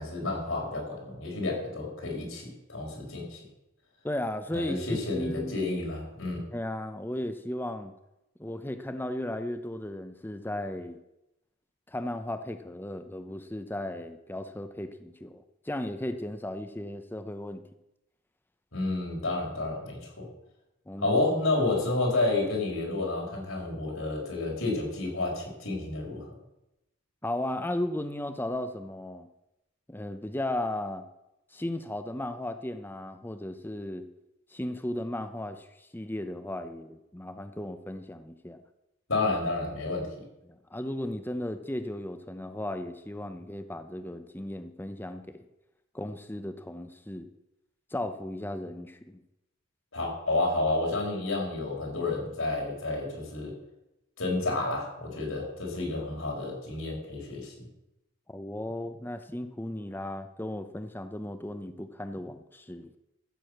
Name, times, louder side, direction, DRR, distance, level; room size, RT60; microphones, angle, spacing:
voice 1, 0.0-3.4 4.5-6.4 18.7-20.3 21.0-26.3 39.1-40.1 49.9-53.5 54.2-57.6, left 2 dB, 80° left, 0 dB, 5.0 m, -30 dB
voice 2, 4.0-5.5 6.5-7.9 8.4-11.0 11.9-17.6 20.9-21.2 27.2-29.3 29.9-31.1 31.5-34.1 34.5-38.6 40.4-45.4 45.9-47.3 47.9-49.2 58.3-62.9, left 1 dB, 10° left, 9 dB, 0.7 m, -35 dB
14.0 x 7.0 x 7.7 m, 0.91 s
head